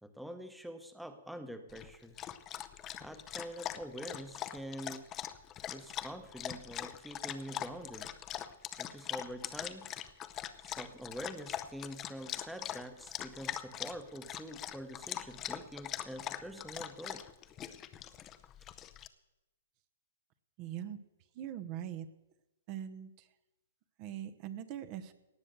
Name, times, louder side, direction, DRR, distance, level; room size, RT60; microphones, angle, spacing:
voice 1, 0.0-2.2 3.0-5.1 5.7-8.1 8.8-9.9 10.6-17.2, equal, ahead, 8 dB, 1.0 m, -45 dB
Dog, 1.7-19.1, left 11 dB, 25° left, 0.7 m, -42 dB
voice 2, 20.6-21.0 21.4-22.0 22.7-23.1 24.0-25.1, right 10 dB, 40° right, 9 dB, 0.9 m, -41 dB
18.0 x 6.5 x 8.0 m, 0.99 s
hypercardioid pair, 125°, 0 cm